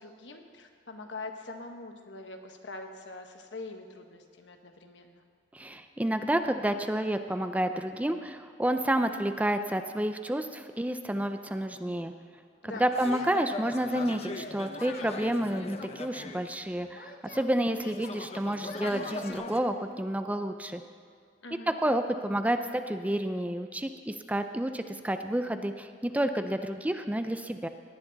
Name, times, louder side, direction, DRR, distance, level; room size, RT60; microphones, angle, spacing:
voice 1, 0.0-5.2 12.6-12.9 21.4-21.8, left 3 dB, 85° left, 4 dB, 1.2 m, -43 dB
voice 2, 5.5-12.1 12.8-20.8 21.7-27.7, right 1 dB, 10° right, 8 dB, 0.5 m, -30 dB
Singing, 12.7-13.6 13.9-15.2 15.7-17.4 17.8-19.3, left 3 dB, 50° left, 1.1 m, -47 dB
sound 1, 12.9-16.9 17.3-19.6, left 3 dB, 35° left, 0.6 m, -40 dB
18.0 x 10.5 x 4.0 m, 2.2 s
head